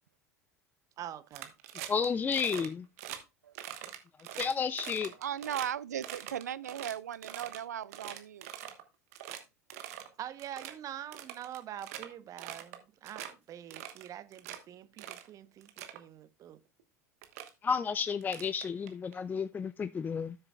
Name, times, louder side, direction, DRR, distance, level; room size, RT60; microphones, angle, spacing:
voice 1, 1.0-1.5 10.2-16.6, right 11 dB, 40° right, 0.8 m, -45 dB
sound 1, 1.3-2.1 2.3-2.7 3.0-3.2 3.5-5.7 6.0-7.6 7.9-8.8 9.1-9.4 9.7-10.1 10.4-10.7 11.1-12.1 12.4-12.8 13.0-13.3 13.7-14.6 15.0-15.3 15.6-16.0 16.8-16.9 17.2-17.5 18.2-19.1, right 12 dB, 65° right, 1.2 m, -43 dB
voice 2, 1.9-2.9 4.3-5.1 17.6-20.4, left 6 dB, 20° left, 0.3 m, -32 dB
voice 3, 5.2-8.5, right 10 dB, 80° right, 0.4 m, -37 dB
12.5 x 6.7 x 2.3 m
hypercardioid pair, 80°, 9 cm